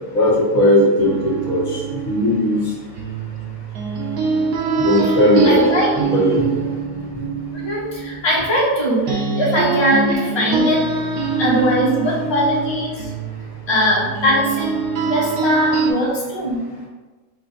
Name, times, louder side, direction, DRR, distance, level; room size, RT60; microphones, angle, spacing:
voice 1, 0.1-1.6 2.0-2.6 4.8-5.7 6.0-6.4, left 1 dB, 70° left, -4 dB, 1.6 m, -16 dB
sound 1, 1.0-8.8 9.1-15.9, right 4 dB, 85° right, 1.2 m, -24 dB
voice 2, 5.4-5.9 7.5-10.9 11.4-13.1 13.7-14.7 15.1-16.7, equal, 20° left, -5 dB, 1.0 m, -20 dB
5.4 x 2.5 x 3.9 m, 1.3 s
omnidirectional pair, 1.5 m